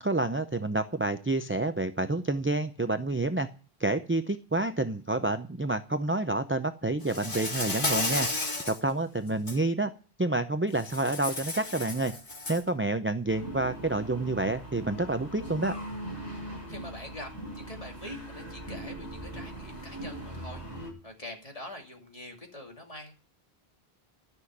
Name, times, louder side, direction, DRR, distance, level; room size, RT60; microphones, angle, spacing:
voice 1, 0.0-3.5 3.8-8.3 8.7-9.9 10.2-12.1 12.5-15.7, right 2 dB, 15° right, 9 dB, 0.4 m, -28 dB
Insect, 7.1-8.8 9.3-9.6 10.8-12.7, left 2 dB, 55° left, 2.2 m, -32 dB
sound 1, 13.3-20.9, right 1 dB, 15° left, 7.0 m, -40 dB
voice 2, 16.3-23.1, left 1 dB, 35° left, 2 dB, 2.7 m, -45 dB
13.0 x 6.3 x 9.6 m, 0.38 s
omnidirectional pair, 1.1 m